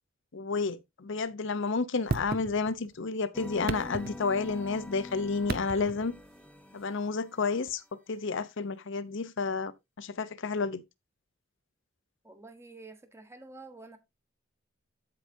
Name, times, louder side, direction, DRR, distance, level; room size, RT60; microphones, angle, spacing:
voice 1, 0.3-6.2 6.7-7.8 8.1-9.7 10.0-10.8, left 4 dB, 65° left, 0.7 m, -31 dB
sound 1, 2.1-3.0 3.5-4.7 5.4-6.1 7.7-7.8, right 3 dB, 50° right, 0.7 m, -35 dB
sound 2, 3.3-7.6, left 1 dB, 5° left, 1.0 m, -45 dB
voice 2, 12.2-14.0, right 3 dB, 15° right, 1.3 m, -49 dB
14.5 x 4.9 x 2.7 m
head